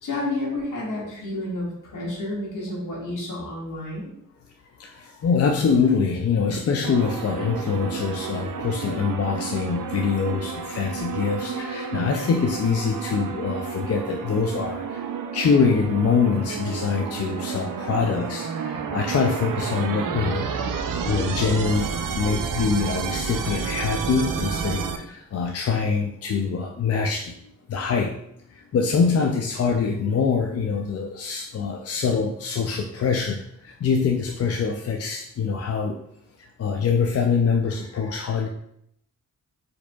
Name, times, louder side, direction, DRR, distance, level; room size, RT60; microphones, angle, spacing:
voice 1, 0.0-4.1, left 2 dB, 70° left, -4 dB, 1.8 m, -30 dB
voice 2, 4.8-15.0 15.3-20.5 21.0-21.9 22.2-27.3 27.7-28.1 28.5-36.0 36.4-38.5, left 5 dB, 50° left, 2 dB, 0.4 m, -24 dB
sound 1, 6.8-25.0, right 6 dB, 80° right, 0.5 m, -30 dB
4.6 x 4.4 x 2.3 m, 0.72 s
wide cardioid pair, 155°, 32 cm